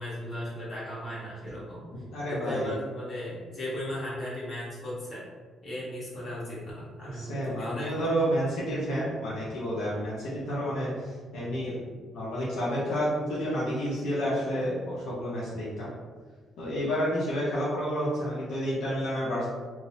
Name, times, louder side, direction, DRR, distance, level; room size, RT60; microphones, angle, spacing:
voice 1, 0.0-1.9 2.3-5.3 5.6-8.1, equal, 45° left, -8 dB, 1.3 m, -36 dB
voice 2, 2.1-2.7 7.0-11.8 12.1-15.9 16.6-19.5, equal, 85° left, -7 dB, 0.6 m, -30 dB
2.9 x 2.0 x 2.7 m, 1.5 s
cardioid pair, 90°, 0 cm